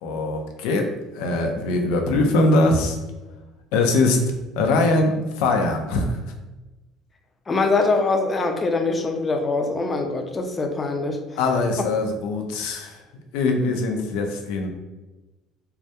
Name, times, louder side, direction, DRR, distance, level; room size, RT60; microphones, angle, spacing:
voice 1, 0.0-0.9 1.1-3.0 3.7-4.2 4.6-6.2 11.4-13.0 13.3-14.7, left 2 dB, 85° left, 3 dB, 0.4 m, -21 dB
voice 2, 7.5-11.2, left 3 dB, 25° left, 4 dB, 0.4 m, -23 dB
2.2 x 2.1 x 2.8 m, 1.1 s
cardioid pair, 120°, 0 cm